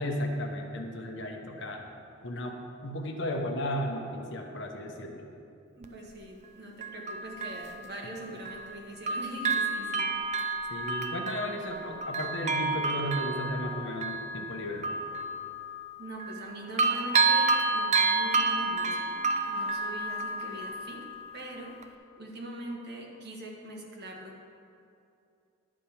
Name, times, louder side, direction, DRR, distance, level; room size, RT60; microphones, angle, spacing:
voice 1, 0.0-1.8 2.2-5.3 10.7-14.9, left 1 dB, 60° left, 3 dB, 1.0 m, -34 dB
Bell, 5.8-5.9 6.8-8.8 9.1-16.5 16.8-21.4 21.8-21.9, right 3 dB, 35° right, 0.5 m, -30 dB
voice 2, 5.8-10.2 16.0-19.2 19.5-21.0 21.3-21.8 22.2-24.4, right 1 dB, 55° right, 0 dB, 1.5 m, -42 dB
11.5 x 5.0 x 7.2 m, 2.6 s
head